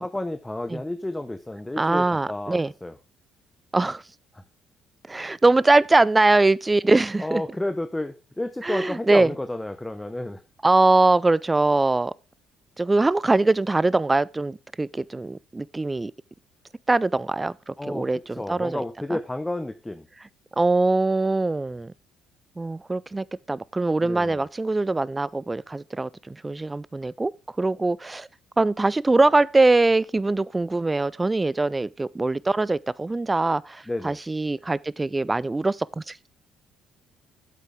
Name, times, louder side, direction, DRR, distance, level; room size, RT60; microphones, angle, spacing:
voice 1, 0.0-2.9 4.3-4.4 7.2-10.4 17.8-20.1 24.0-24.4 33.9-34.2, left 1 dB, 10° left, 0.7 m, -31 dB
voice 2, 1.8-2.7 3.7-4.0 5.1-7.4 8.6-9.3 10.6-12.1 12.8-16.1 16.9-18.8 19.1-19.2 20.6-21.9 22.6-27.3 27.6-28.3 28.6-36.3, right 2 dB, 20° right, 0.4 m, -22 dB
8.4 x 8.2 x 3.6 m
hypercardioid pair, 55°, 0 cm